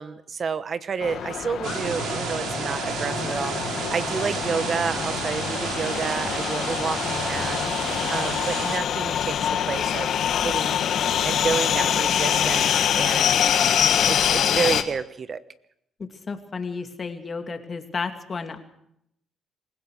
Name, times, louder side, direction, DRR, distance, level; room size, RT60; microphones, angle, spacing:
voice 1, 0.0-9.4 9.7-10.8 11.2-12.7 13.0-15.4, right 5 dB, 45° right, 14 dB, 1.0 m, -30 dB
sound 1, 1.0-14.8, left 9 dB, 70° left, 1.7 m, -25 dB
sound 2, 1.6-8.8, right 6 dB, 80° right, 3.0 m, -31 dB
voice 2, 16.0-18.6, left 4 dB, 40° left, 6 dB, 2.7 m, -32 dB
27.0 x 16.0 x 6.6 m, 0.76 s
cardioid pair, 90°, 0 cm